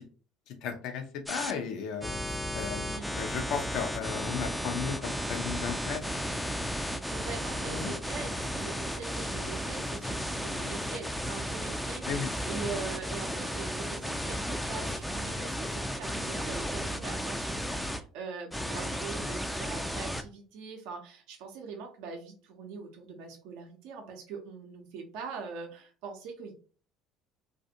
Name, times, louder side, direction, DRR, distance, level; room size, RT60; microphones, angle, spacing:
voice 1, 0.5-2.9 3.2-6.0 7.7-7.9 12.1-12.3, left 7 dB, 65° left, 5 dB, 0.6 m, -35 dB
sound 1, 1.3-1.5 2.0-18.0 18.5-20.2, equal, ahead, 0.4 m, -34 dB
voice 2, 2.9-3.2 7.1-26.5, right 5 dB, 70° right, 2 dB, 0.6 m, -42 dB
2.5 x 2.4 x 2.7 m, 0.39 s
hypercardioid pair, 65°, 0 cm